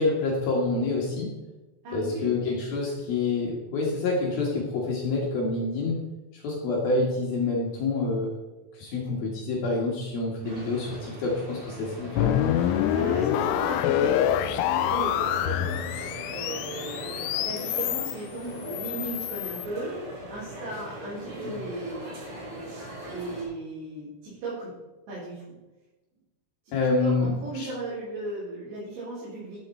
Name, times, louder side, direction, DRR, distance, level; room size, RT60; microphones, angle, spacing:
voice 1, 0.0-1.3 1.9-6.0 6.4-8.4 8.8-12.3 26.7-27.7, left 3 dB, 60° left, -2 dB, 3.0 m, -27 dB
voice 2, 1.8-2.4 12.9-20.0 20.3-22.1 22.4-22.6 23.1-24.7 25.1-25.6 26.6-29.6, right 2 dB, 60° right, -11 dB, 6.0 m, -36 dB
sound 1, 10.4-23.4, equal, 35° right, 3.1 m, -40 dB
sound 2, 12.2-18.1 18.6-19.7, left 11 dB, 85° left, 2.9 m, -26 dB
13.0 x 7.4 x 4.3 m, 1.1 s
omnidirectional pair, 5.8 m